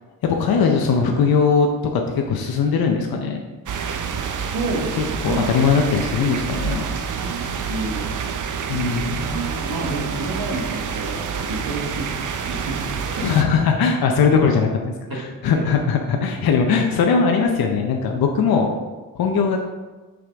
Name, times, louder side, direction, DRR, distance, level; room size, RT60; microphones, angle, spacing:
voice 1, 0.2-1.7 1.9-2.0 2.3-3.4 5.0-6.8 8.7-9.5 13.2-14.7 15.1-18.7 19.2-19.6, left 5 dB, 75° left, 2 dB, 0.7 m, -20 dB
sound 1, 3.7-13.4, right 6 dB, 55° right, 0.6 m, -27 dB
voice 2, 4.3-5.0 5.3-5.5 7.1-8.1 8.8-8.9 9.5-13.4 15.1-15.2, right 2 dB, 75° right, -2 dB, 1.3 m, -30 dB
6.0 x 4.9 x 3.4 m, 1.3 s
wide cardioid pair, 135°, 36 cm